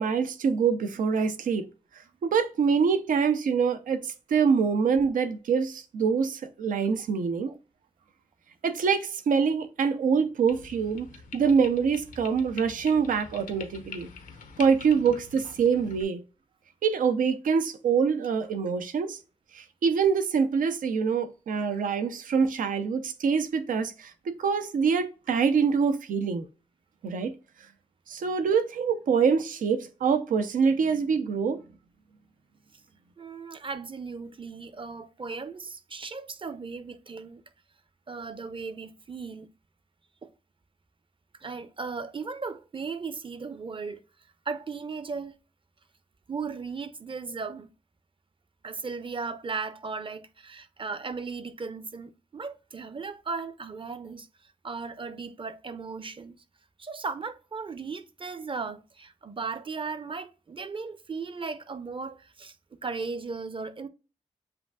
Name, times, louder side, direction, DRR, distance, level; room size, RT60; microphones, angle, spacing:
voice 1, 0.0-1.7 2.2-7.5 8.6-11.1 11.3-14.1 14.6-16.2 16.8-19.2 19.5-26.5 27.0-27.3 28.1-31.6, right 6 dB, 85° right, 0.6 m, -25 dB
sound 1, 10.5-16.0, left 5 dB, 85° left, 0.8 m, -45 dB
voice 2, 33.2-37.4 38.1-39.5 40.2-40.3 41.4-44.0 44.5-45.3 46.3-47.7 48.6-54.3 54.6-56.4 56.8-62.6 62.8-63.9, right 4 dB, 40° right, 0.7 m, -36 dB
7.6 x 2.6 x 2.3 m
cardioid pair, 50°, 14 cm